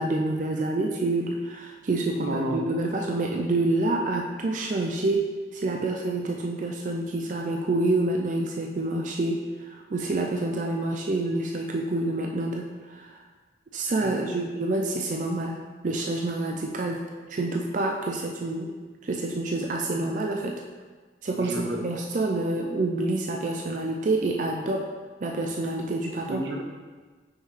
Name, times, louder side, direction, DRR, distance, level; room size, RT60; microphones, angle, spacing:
voice 1, 0.0-13.2 13.7-18.7 19.0-20.6 21.2-24.9 25.2-26.4, right 2 dB, 45° right, 1 dB, 0.4 m, -28 dB
voice 2, 2.2-2.6 14.0-14.4 21.3-21.8 26.3-26.6, right 1 dB, 80° right, 1 dB, 0.8 m, -31 dB
5.8 x 5.4 x 3.3 m, 1.4 s
head